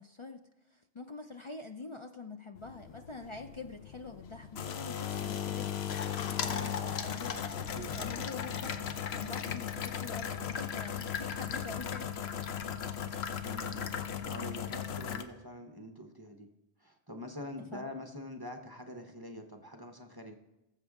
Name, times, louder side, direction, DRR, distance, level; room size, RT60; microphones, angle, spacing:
voice 1, 0.0-7.5 8.0-12.2 17.7-17.9, left 4 dB, 40° left, 5 dB, 0.4 m, -45 dB
sound 1, 2.6-15.2, left 8 dB, 70° left, 1.0 m, -37 dB
voice 2, 6.4-6.9 7.4-8.7 13.4-16.5 16.8-20.4, left 1 dB, 20° right, 4 dB, 0.8 m, -45 dB
20.0 x 7.4 x 3.6 m, 0.95 s
omnidirectional pair, 1.1 m